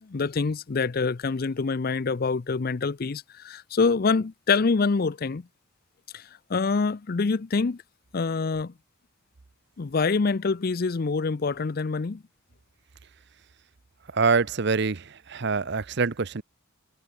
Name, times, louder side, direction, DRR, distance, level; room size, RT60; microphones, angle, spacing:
voice 1, 0.0-5.5 6.1-7.8 8.1-8.7 9.8-12.2, left 4 dB, 45° left, 0.5 m, -26 dB
voice 2, 14.1-16.4, right 4 dB, 55° right, 0.7 m, -25 dB
head